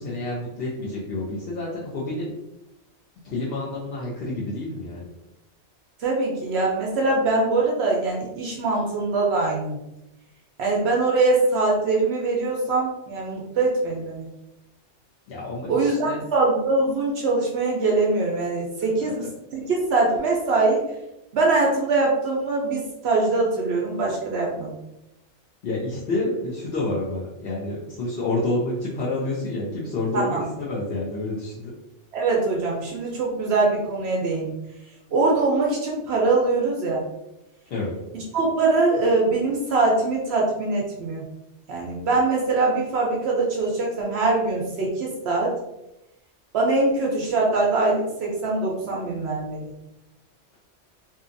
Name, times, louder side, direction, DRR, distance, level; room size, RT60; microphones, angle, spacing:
voice 1, 0.0-2.3 3.2-5.1 15.3-16.2 19.0-19.1 25.6-31.7 37.7-38.0, left 2 dB, 60° left, -6 dB, 0.8 m, -29 dB
voice 2, 6.0-9.8 10.6-14.3 15.7-20.8 21.3-24.8 30.1-30.5 32.1-34.5 35.1-37.0 38.1-41.2 41.7-45.5 46.5-49.7, right 3 dB, 65° right, -2 dB, 0.8 m, -23 dB
2.7 x 2.3 x 2.5 m, 0.91 s
omnidirectional pair, 1.2 m